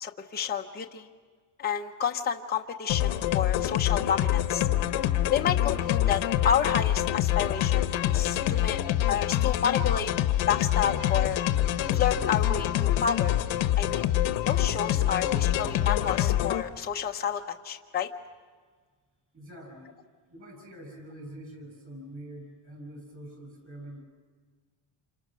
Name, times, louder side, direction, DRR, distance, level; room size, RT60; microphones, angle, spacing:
voice 1, 0.0-1.1 1.6-4.7 5.3-8.8 9.1-10.1 10.5-11.4 11.9-13.4 13.8-14.1 14.5-18.1, left 8 dB, 20° left, 2 dB, 0.8 m, -30 dB
sound 1, 2.9-16.6, left 12 dB, 70° left, 1.2 m, -26 dB
voice 2, 19.3-20.0 20.3-24.0, right 1 dB, 25° right, 3 dB, 6.6 m, -45 dB
28.5 x 26.5 x 6.3 m, 1.5 s
cardioid pair, 180°, 48 cm